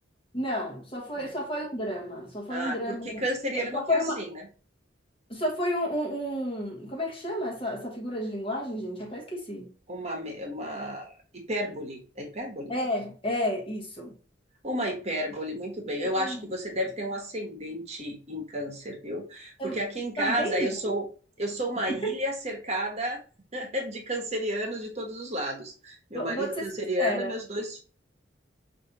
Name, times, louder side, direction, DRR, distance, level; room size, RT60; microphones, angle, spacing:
voice 1, 0.3-3.2 3.5-4.2 5.3-9.7 12.7-14.1 16.1-16.4 19.6-19.8 20.2-20.9 21.9-22.1 26.1-27.3, equal, 30° left, 1.2 m, -31 dB
voice 2, 2.5-4.4 9.9-12.7 14.6-21.1 21.4-23.2 23.5-27.8, equal, 35° right, 1.1 m, -32 dB
5.1 x 2.8 x 2.8 m
head